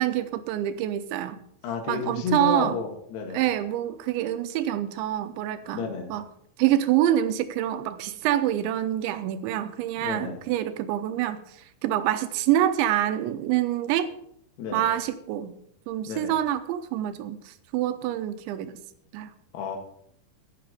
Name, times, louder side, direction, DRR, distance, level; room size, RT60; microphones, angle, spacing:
voice 1, 0.0-1.4 1.9-2.8 3.3-5.8 6.1-6.3 6.6-11.4 11.8-14.1 14.7-15.6 15.9-18.7 19.1-19.3, right 12 dB, 80° right, 11 dB, 3.0 m, -26 dB
voice 2, 1.6-3.4 5.7-6.1 10.0-10.4 14.6-14.9 16.1-16.4 19.5-19.8, left 5 dB, 65° left, 4 dB, 3.6 m, -31 dB
12.0 x 9.4 x 5.1 m, 0.71 s
omnidirectional pair, 5.4 m